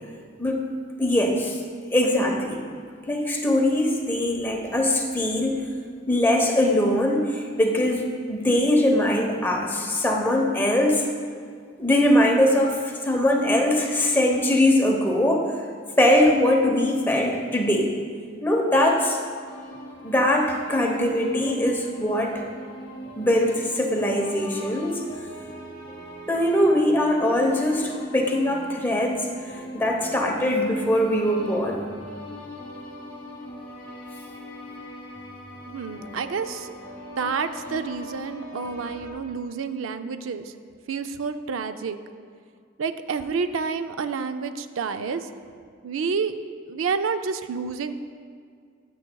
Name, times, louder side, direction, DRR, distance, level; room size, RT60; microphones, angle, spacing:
voice 1, 1.0-1.6 1.9-2.6 3.1-5.7 6.1-11.0 11.8-12.8 13.0-15.4 16.0-17.9 18.4-19.2 20.0-22.3 23.2-25.0 26.3-29.3 29.7-31.8, left 1 dB, 10° left, 0 dB, 0.9 m, -21 dB
sound 1, 19.5-39.1, equal, 25° left, 1.9 m, -40 dB
voice 2, 35.7-36.7 37.2-40.4 40.9-42.0 42.8-45.2 45.8-46.3 46.7-47.9, right 5 dB, 85° right, 9 dB, 0.4 m, -29 dB
14.0 x 7.6 x 2.3 m, 2.1 s
head